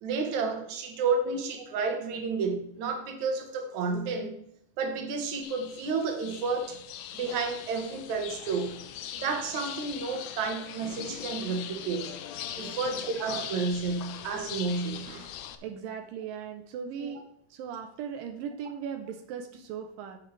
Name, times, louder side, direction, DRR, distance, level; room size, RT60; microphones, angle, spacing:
voice 1, 0.0-4.4 4.8-6.8 7.1-8.8 9.2-12.1 12.6-15.3 17.0-17.1, right 4 dB, 65° right, 5 dB, 2.5 m, -31 dB
sound 1, 5.4-15.6, left 10 dB, 80° left, 1.5 m, -41 dB
voice 2, 12.8-13.2 15.6-17.2 17.5-20.2, right 7 dB, 85° right, 5 dB, 2.5 m, -38 dB
9.6 x 7.8 x 3.3 m, 0.71 s
omnidirectional pair, 3.9 m